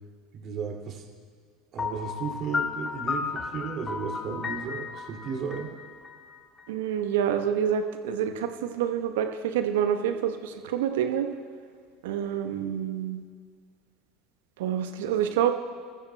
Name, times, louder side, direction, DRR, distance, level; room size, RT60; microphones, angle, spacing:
voice 1, 0.3-1.1 1.7-5.8, right 6 dB, 45° right, 0 dB, 2.4 m, -34 dB
Piano, 1.8-6.6, left 5 dB, 30° left, 1.5 m, -33 dB
voice 2, 6.7-11.3 12.0-13.2 14.6-15.5, right 9 dB, 70° right, 6 dB, 1.0 m, -27 dB
26.0 x 14.0 x 2.2 m, 2.1 s
figure-of-eight pair, 70°, 0 cm